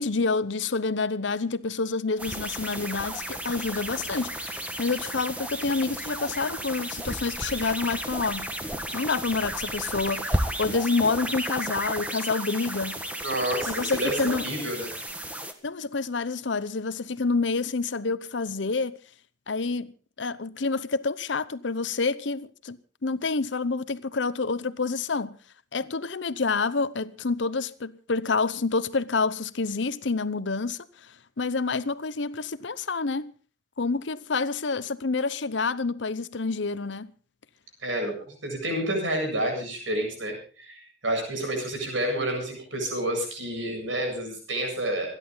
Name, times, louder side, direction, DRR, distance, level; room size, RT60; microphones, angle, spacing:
voice 1, 0.0-8.5 8.9-13.0 13.7-14.4 15.6-19.0 19.5-19.9 20.2-25.4 25.7-30.9 31.4-33.3 33.8-37.1, left 4 dB, 75° left, 0.8 m, -28 dB
sound 1, 2.2-15.5, right 1 dB, 10° right, 1.5 m, -33 dB
voice 2, 13.2-14.9 37.8-45.1, right 1 dB, 90° right, 8.0 m, -29 dB
27.0 x 11.0 x 4.0 m
head